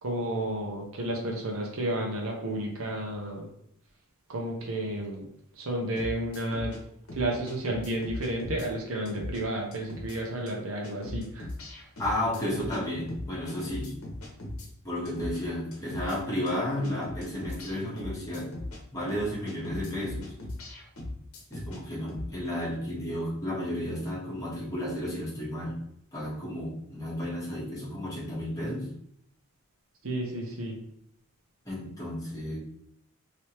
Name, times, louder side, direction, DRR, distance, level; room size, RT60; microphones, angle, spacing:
voice 1, 0.0-3.5 4.3-5.3 5.6-6.8 7.1-11.5 30.0-30.8, right 1 dB, 75° right, 0 dB, 0.8 m, -32 dB
sound 1, 6.0-6.8 7.1-8.7 9.1-9.4 9.7-10.2 10.5-10.6 10.8-12.8 13.1-14.7 15.1-15.4 15.7-16.2 16.5-16.6 16.8-18.8 19.1-21.8 22.1-22.3, left 1 dB, 80° left, 1.0 m, -39 dB
voice 2, 12.0-13.9 14.8-18.5 18.9-20.3 21.5-25.8 26.1-28.9 31.6-32.6, left 1 dB, 15° left, -7 dB, 1.3 m, -32 dB
3.3 x 3.0 x 2.9 m, 0.70 s
head